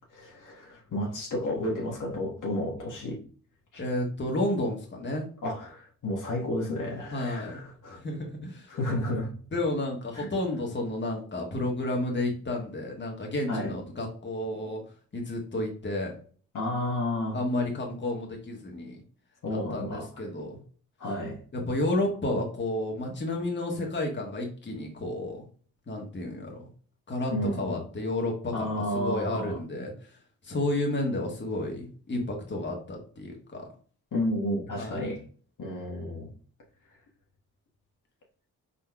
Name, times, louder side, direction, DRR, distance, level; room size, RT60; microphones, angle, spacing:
voice 1, 0.1-3.2 3.7-3.8 5.4-8.0 8.7-9.3 10.1-10.3 13.5-13.7 16.5-17.4 19.4-20.1 21.0-21.4 27.3-27.8 28.5-29.6 34.1-35.2 35.6-36.3, left 1 dB, 55° left, 1.4 m, -31 dB
voice 2, 3.8-5.3 7.1-7.6 7.9-8.7 9.5-14.8 15.1-16.1 17.3-19.0 19.5-20.6 21.5-25.4 25.9-26.7 27.1-29.9 30.4-33.7 34.8-35.1, left 1 dB, 30° left, 1.4 m, -31 dB
4.2 x 3.9 x 2.3 m
supercardioid pair, 50°, 36 cm